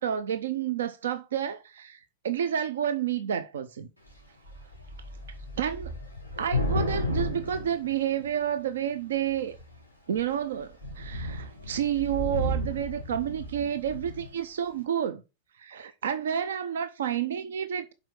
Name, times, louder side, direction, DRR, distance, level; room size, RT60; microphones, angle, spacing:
voice 1, 0.0-2.0 2.2-3.9 5.6-5.9 6.4-9.6 10.1-15.2 15.6-17.9, right 9 dB, 65° right, 0.8 m, -30 dB
Thunder / Rain, 4.1-4.2 4.4-8.6 9.3-9.7 10.2-10.3 10.6-14.3, left 1 dB, 90° right, 3.4 m, -33 dB
7.7 x 5.6 x 6.3 m
figure-of-eight pair, 90°, 0 cm